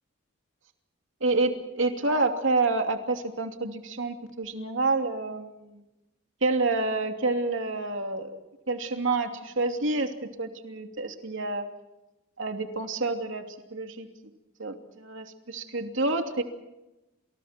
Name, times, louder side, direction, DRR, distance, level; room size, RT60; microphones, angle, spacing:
voice 1, 1.2-5.8 6.4-11.7 12.4-13.5 13.7-14.1 14.6-16.4, right 3 dB, 60° right, 4 dB, 3.0 m, -28 dB
29.5 x 28.5 x 4.5 m, 0.98 s
head